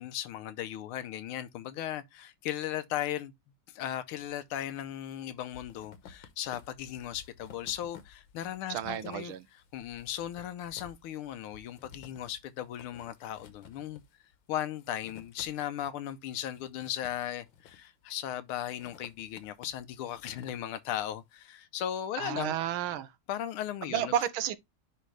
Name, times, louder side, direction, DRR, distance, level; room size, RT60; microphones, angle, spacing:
voice 1, 0.0-3.3 3.7-9.3 9.7-14.0 14.5-22.5 23.3-24.1, left 11 dB, 85° left, 1.6 m, -37 dB
sound 1, 4.2-4.8 5.1-15.9 16.2-18.1 18.5-21.2, left 7 dB, 65° left, 1.6 m, -55 dB
voice 2, 8.7-9.4 22.2-23.1 23.9-24.6, right 10 dB, 75° right, 1.4 m, -31 dB
10.0 x 3.4 x 3.2 m
omnidirectional pair, 2.3 m